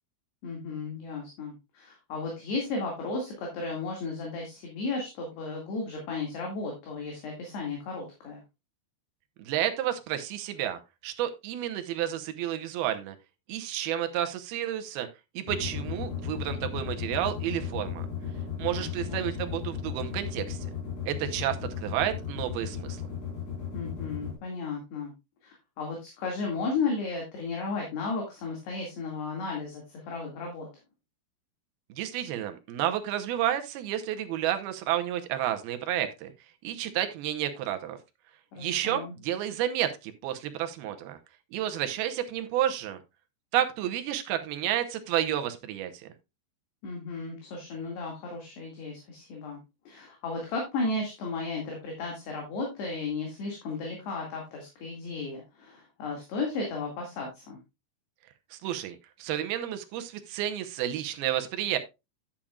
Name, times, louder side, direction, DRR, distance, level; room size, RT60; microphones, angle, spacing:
voice 1, 0.4-8.4 18.7-19.2 23.7-25.1 25.4-30.7 38.5-39.1 46.8-49.6 49.9-57.6, left 3 dB, 60° left, 0 dB, 4.0 m, -34 dB
voice 2, 9.4-13.2 13.5-15.1 15.3-18.0 18.6-20.7 21.1-23.0 31.9-36.3 36.6-38.0 38.6-41.2 41.5-43.0 43.5-46.1 58.5-61.8, right 11 dB, 75° right, 8 dB, 2.3 m, -31 dB
sound 1, 15.5-24.4, left 8 dB, 40° left, 5.5 m, -35 dB
11.5 x 8.7 x 2.4 m, 0.24 s
omnidirectional pair, 5.6 m